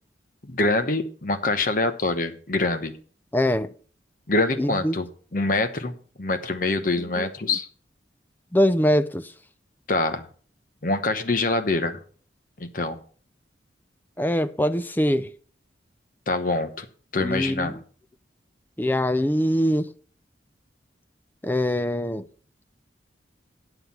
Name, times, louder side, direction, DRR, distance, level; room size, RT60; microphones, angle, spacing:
voice 1, 0.4-2.9 4.3-7.7 9.9-10.3 10.8-12.0 12.6-13.0 16.3-16.9 17.1-17.8, left 2 dB, 50° left, 1.0 m, -25 dB
voice 2, 3.3-3.7 4.6-5.0 7.2-7.3 8.5-9.3 14.2-15.3 17.2-17.8 18.8-19.9 21.4-22.2, equal, 10° left, 0.4 m, -23 dB
9.2 x 8.0 x 5.5 m
head